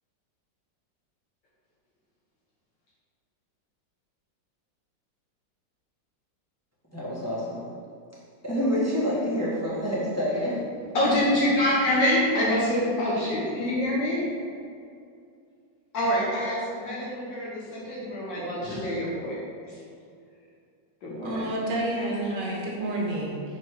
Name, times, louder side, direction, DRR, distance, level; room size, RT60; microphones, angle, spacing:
voice 1, 6.9-7.6 8.4-10.6, equal, 10° left, -9 dB, 1.2 m, -27 dB
voice 2, 10.9-14.2 15.9-19.4 19.6-19.8 21.0-21.4, left 1 dB, 75° left, -7 dB, 1.8 m, -26 dB
voice 3, 21.2-23.4, right 1 dB, 70° right, -3 dB, 1.7 m, -29 dB
5.2 x 4.1 x 4.6 m, 2.4 s
omnidirectional pair, 2.0 m